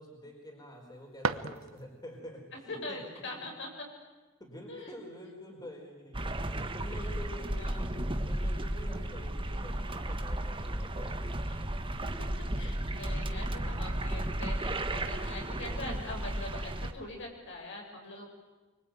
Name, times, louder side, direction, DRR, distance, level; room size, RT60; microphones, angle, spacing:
voice 1, 0.0-3.5 4.4-11.3, equal, 20° left, 1 dB, 4.7 m, -48 dB
sound 1, 0.7-2.2, right 4 dB, 70° right, 1.1 m, -36 dB
voice 2, 2.7-3.9 4.7-4.9 7.3-7.8 10.6-10.7 11.5-11.6 12.0-12.3 12.6-18.3, left 2 dB, 60° left, 0 dB, 6.9 m, -43 dB
sound 2, 6.1-16.9, right 1 dB, 25° right, 1.4 m, -34 dB
25.0 x 24.0 x 9.5 m, 1.2 s
head